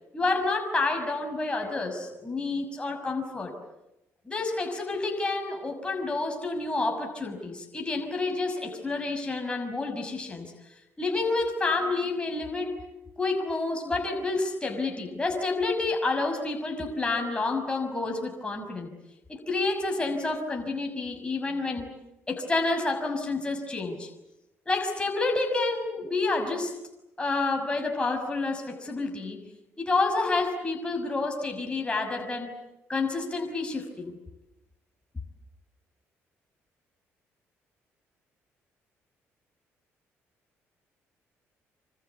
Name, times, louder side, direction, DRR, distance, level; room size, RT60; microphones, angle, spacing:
voice 1, 0.1-3.5 4.3-10.5 11.0-12.8 13.2-18.9 19.3-21.9 22.3-24.1 24.7-26.7 27.2-29.4 29.8-32.6 32.9-34.1, left 3 dB, 20° left, 3 dB, 6.1 m, -29 dB
27.0 x 26.5 x 8.3 m, 0.92 s
cardioid pair, 80°, 6 cm